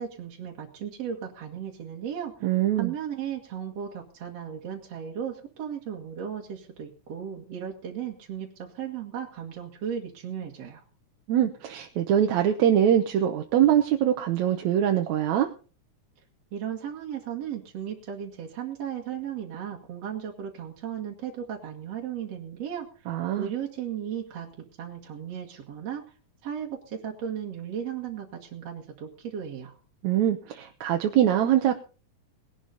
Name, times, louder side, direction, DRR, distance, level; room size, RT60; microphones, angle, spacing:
voice 1, 0.0-2.3 2.7-10.8 16.5-22.9 23.4-24.5 24.8-26.0 26.4-29.8, right 8 dB, 60° right, 0 dB, 2.8 m, -35 dB
voice 2, 2.4-2.9 11.3-15.5 23.1-23.5 30.0-31.8, right 10 dB, 75° right, 4 dB, 2.2 m, -23 dB
19.5 x 11.5 x 4.0 m, 0.37 s
omnidirectional pair, 3.4 m